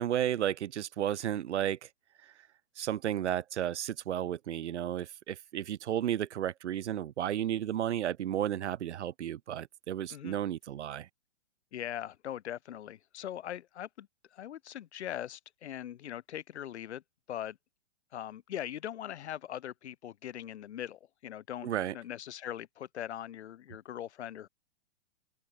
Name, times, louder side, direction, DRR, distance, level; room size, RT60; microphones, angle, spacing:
voice 1, 0.0-1.8 2.8-11.1 21.6-21.9, right 11 dB, 80° right, 1.2 m, -33 dB
voice 2, 11.7-17.0 17.3-17.6 18.1-24.5, left 11 dB, 70° left, 1.6 m, -41 dB
open air
hypercardioid pair, 155°, 34 cm